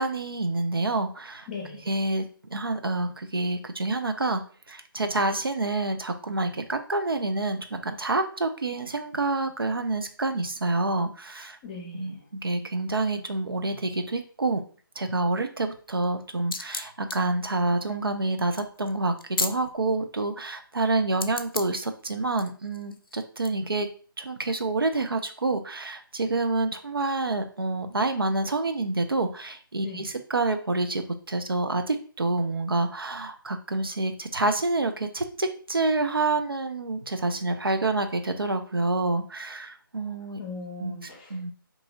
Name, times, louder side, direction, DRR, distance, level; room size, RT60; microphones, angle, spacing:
voice 1, 0.0-1.5 1.9-4.4 4.7-11.6 11.9-14.6 15.0-23.9 24.2-40.4 40.8-40.9 41.3-41.5, right 2 dB, 75° right, 7 dB, 0.5 m, -28 dB
voice 2, 1.5-1.9 11.6-12.2 29.8-30.1 40.4-41.4, left 4 dB, 25° left, 0 dB, 0.7 m, -39 dB
sound 1, 16.0-19.9 21.2-21.9 22.4-23.5, left 3 dB, 75° left, 0.4 m, -34 dB
2.8 x 2.7 x 3.6 m, 0.42 s
figure-of-eight pair, 150°, 12 cm